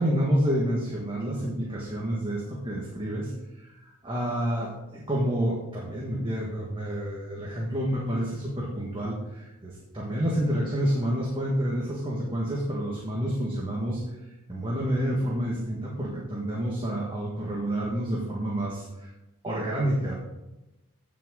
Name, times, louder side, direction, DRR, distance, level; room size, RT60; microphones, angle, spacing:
voice 1, 0.0-14.0 14.5-19.1 19.4-20.2, equal, 25° right, -4 dB, 1.8 m, -29 dB
16.5 x 6.4 x 4.0 m, 0.99 s
head